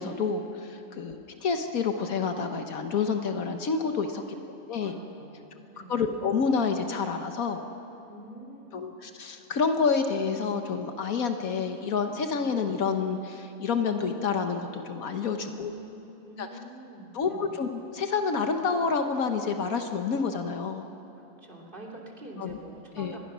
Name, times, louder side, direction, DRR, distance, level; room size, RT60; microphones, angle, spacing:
voice 1, 0.0-4.2 4.7-4.9 5.9-7.6 8.7-15.7 16.4-16.5 17.1-20.9 22.4-22.6 23.0-23.2, left 5 dB, 80° left, 6 dB, 1.5 m, -28 dB
voice 2, 4.1-4.5 4.8-6.1 8.1-8.8 15.3-17.5 21.2-23.2, right 1 dB, 35° right, -2 dB, 3.1 m, -46 dB
25.5 x 21.0 x 6.2 m, 2.8 s
omnidirectional pair, 1.5 m